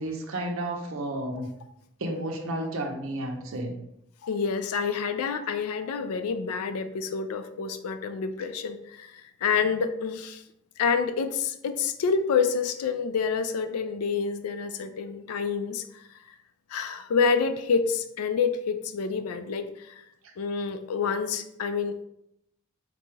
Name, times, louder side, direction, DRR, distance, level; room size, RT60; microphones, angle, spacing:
voice 1, 0.0-1.5 2.0-3.7 20.2-20.3, right 1 dB, 70° right, 3 dB, 0.6 m, -32 dB
voice 2, 4.2-10.4 10.8-16.2 16.7-19.9 20.4-22.0, left 5 dB, 85° left, 9 dB, 0.4 m, -28 dB
3.9 x 2.2 x 3.1 m, 0.79 s
head